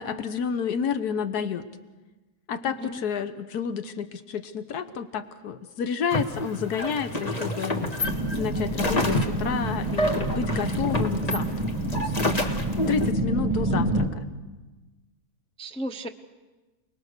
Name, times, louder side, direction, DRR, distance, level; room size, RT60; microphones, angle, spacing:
voice 1, 0.0-1.6 2.5-7.9 8.3-11.5 11.9-12.5 12.9-14.2, left 7 dB, 90° left, 10 dB, 1.5 m, -30 dB
voice 2, 2.6-3.0 9.4-9.6 13.5-13.9 15.6-16.1, right 1 dB, 5° left, 5 dB, 0.6 m, -36 dB
sound 1, 6.1-13.1, left 1 dB, 25° left, 1.7 m, -29 dB
sound 2, 8.0-14.1, right 1 dB, 30° right, 2.3 m, -28 dB
29.0 x 20.0 x 6.6 m, 1.2 s
omnidirectional pair, 1.6 m